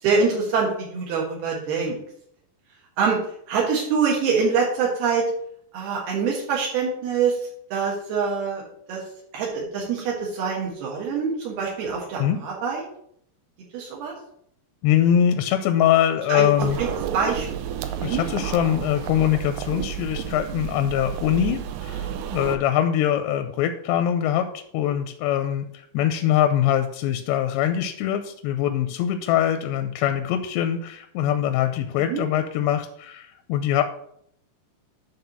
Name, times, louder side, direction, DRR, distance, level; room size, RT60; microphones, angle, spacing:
voice 1, 0.0-2.0 3.0-3.2 3.5-5.3 5.7-9.0 9.3-12.8 13.7-14.2 16.3-16.9 17.1-17.5 18.0-18.2 32.0-32.2, right 5 dB, 70° right, -3 dB, 3.4 m, -25 dB
voice 2, 14.8-16.8 18.0-33.8, left 10 dB, 85° left, 7 dB, 2.8 m, -23 dB
sound 1, 16.6-22.6, right 9 dB, 85° right, 1.9 m, -31 dB
9.8 x 3.6 x 7.1 m, 0.68 s
omnidirectional pair, 4.8 m